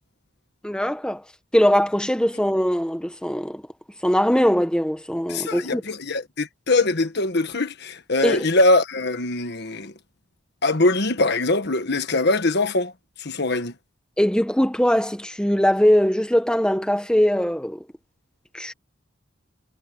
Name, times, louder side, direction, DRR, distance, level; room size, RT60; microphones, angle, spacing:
voice 1, 0.6-1.2 1.5-3.6 4.0-5.8 8.2-8.5 14.2-17.8 18.5-18.7, equal, 5° left, 1.3 m, -21 dB
voice 2, 5.3-9.9 10.6-12.9 13.2-13.7, left 2 dB, 60° left, 1.5 m, -22 dB
head